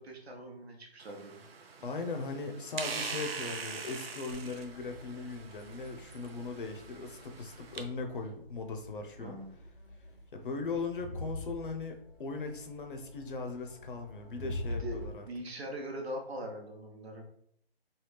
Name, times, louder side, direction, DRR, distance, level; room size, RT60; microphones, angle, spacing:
voice 1, 0.0-1.4 9.2-9.5 14.7-17.2, equal, 90° right, 1 dB, 1.0 m, -42 dB
sound 1, 1.0-7.8, right 5 dB, 70° right, 0.6 m, -43 dB
voice 2, 1.8-9.4 10.3-15.2, left 3 dB, 55° left, 4 dB, 0.6 m, -39 dB
Crowd, 4.3-15.0, left 1 dB, 5° right, 0.7 m, -45 dB
3.3 x 2.3 x 3.2 m, 0.69 s
hypercardioid pair, 160°, 31 cm